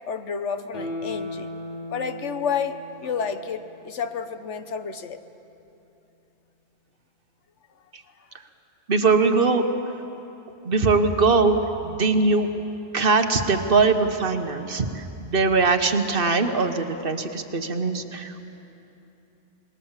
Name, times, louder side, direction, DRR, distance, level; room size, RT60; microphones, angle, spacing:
voice 1, 0.1-1.5 1.9-2.8 3.0-5.2, left 6 dB, 90° left, 9 dB, 1.3 m, -30 dB
Guitar, 0.7-4.0 4.4-4.5, left 1 dB, 45° left, 4.9 m, -37 dB
voice 2, 8.9-9.6 10.6-11.6 11.8-12.5 12.9-18.4, right 4 dB, 55° right, 7 dB, 1.4 m, -21 dB
27.0 x 20.5 x 7.4 m, 2.9 s
omnidirectional pair, 1.2 m